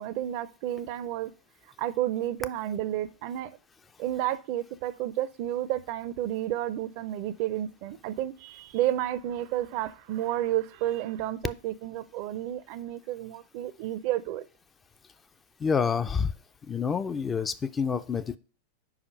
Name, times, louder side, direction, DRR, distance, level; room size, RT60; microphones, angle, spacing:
voice 1, 0.0-1.3 1.8-3.5 4.0-14.4, right 13 dB, 45° right, 0.5 m, -31 dB
voice 2, 15.6-16.3 16.7-18.4, left 6 dB, 20° left, 0.4 m, -28 dB
5.0 x 4.9 x 5.2 m
figure-of-eight pair, 90°, 0 cm